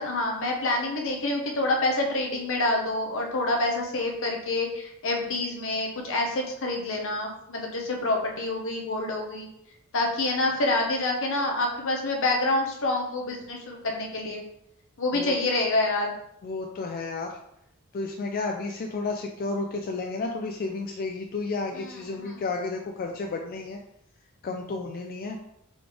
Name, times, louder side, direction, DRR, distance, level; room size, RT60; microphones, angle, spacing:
voice 1, 0.0-9.5 9.9-14.4 15.0-16.1 22.1-22.4, left 2 dB, 60° left, 1 dB, 0.8 m, -27 dB
voice 2, 16.4-17.4 17.9-23.8 24.4-25.4, left 3 dB, 40° left, 2 dB, 0.3 m, -32 dB
4.0 x 3.3 x 3.3 m, 0.76 s
head